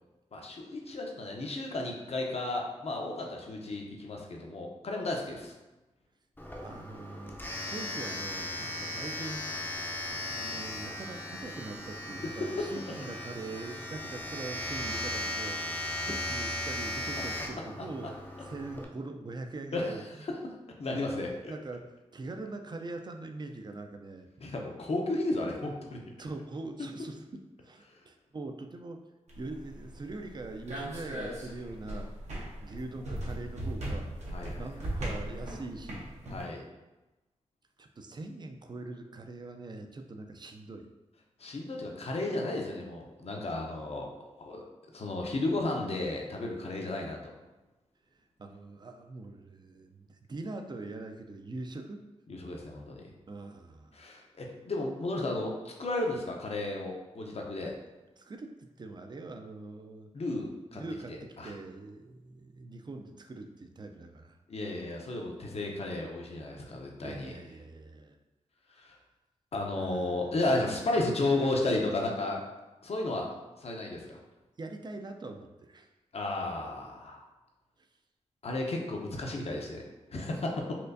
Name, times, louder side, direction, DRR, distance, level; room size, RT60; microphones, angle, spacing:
voice 1, 0.3-5.5 12.2-12.3 17.2-17.3 19.7-20.0 20.8-21.5 24.4-26.0 27.9-28.0 34.3-34.7 36.3-36.6 41.4-44.6 44.9-47.3 52.3-53.1 53.9-57.7 60.1-60.8 61.1-61.5 64.5-67.3 68.7-69.0 69.5-72.4 72.8-73.3 73.6-74.2 76.1-77.2 78.4-80.7, left 2 dB, 60° left, 0 dB, 0.7 m, -33 dB
Domestic sounds home sounds, 6.4-18.8, left 1 dB, 15° left, 0.6 m, -37 dB
voice 2, 6.6-9.7 10.1-18.2 18.4-20.2 21.0-24.3 26.2-29.0 29.4-32.1 32.6-34.1 34.6-36.1 37.8-40.9 46.8-47.0 48.4-52.0 53.3-54.0 57.6-57.7 58.2-60.1 60.7-64.4 67.0-68.2 69.7-70.6 74.1-74.3 74.6-75.9 77.8-77.9, right 2 dB, 35° right, 5 dB, 0.4 m, -43 dB
sound 1, 29.3-36.4, right 1 dB, 70° right, 0.9 m, -38 dB
4.3 x 2.5 x 2.6 m, 1.1 s
cardioid pair, 50°, 12 cm